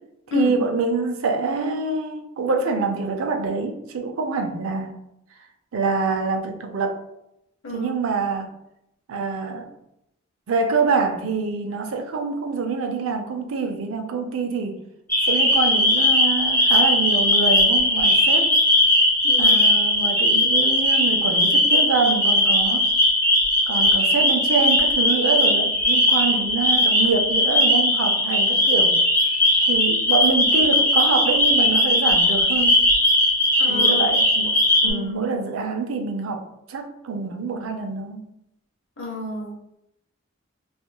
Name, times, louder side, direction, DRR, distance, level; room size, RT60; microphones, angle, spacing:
voice 1, 0.3-5.0 5.7-7.0 7.7-8.5 9.1-9.7 10.5-14.8 15.3-18.5 19.4-22.9 23.7-29.0 29.7-32.8 33.7-38.3, right 4 dB, 90° right, 5 dB, 0.4 m, -25 dB
voice 2, 7.6-7.9 19.2-19.6 33.6-34.2 34.8-35.3 39.0-39.6, left 3 dB, 75° left, -1 dB, 0.7 m, -30 dB
sound 1, 15.1-34.9, left 1 dB, 10° left, 0.5 m, -18 dB
2.9 x 2.4 x 2.2 m, 0.82 s
head